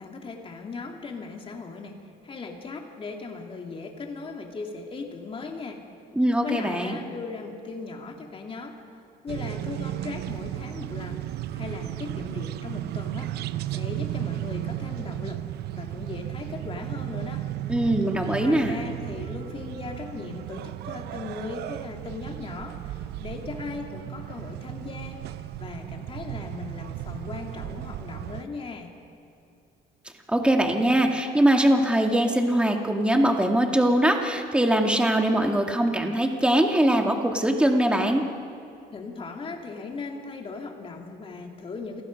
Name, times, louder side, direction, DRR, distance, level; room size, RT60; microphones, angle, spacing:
voice 1, 0.0-5.8 6.4-8.8 9.2-11.2 11.5-13.3 13.7-15.4 15.7-17.5 18.4-25.2 25.6-28.9 38.9-42.0, left 4 dB, 30° left, 2 dB, 2.7 m, -38 dB
voice 2, 6.2-7.0 17.7-18.8 30.3-38.2, right 1 dB, 5° right, 3 dB, 2.1 m, -22 dB
sound 1, 9.3-28.4, right 13 dB, 75° right, 0.7 m, -34 dB
28.5 x 17.5 x 5.3 m, 2.5 s
cardioid pair, 110°, 17 cm